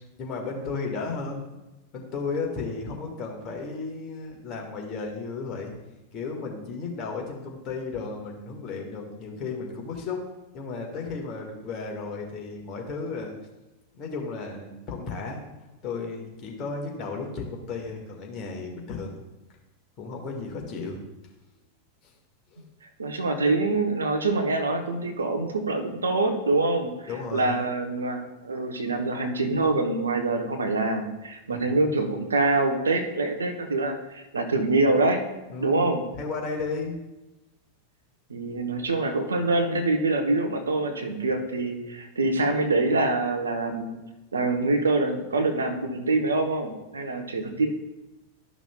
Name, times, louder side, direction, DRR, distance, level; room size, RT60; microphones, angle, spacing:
voice 1, 0.2-1.4 1.9-5.7 6.1-10.2 10.5-13.3 13.9-15.4 15.8-19.1 20.0-21.0 22.0-22.1 22.5-22.6 27.1-27.7 31.5-31.7 35.5-37.0, left 4 dB, 35° left, 0 dB, 1.6 m, -34 dB
voice 2, 23.0-35.2 35.6-36.1 38.3-44.0 44.3-47.7, right 2 dB, 75° right, 5 dB, 0.9 m, -25 dB
12.5 x 6.0 x 2.3 m, 1.0 s
figure-of-eight pair, 90°, 0 cm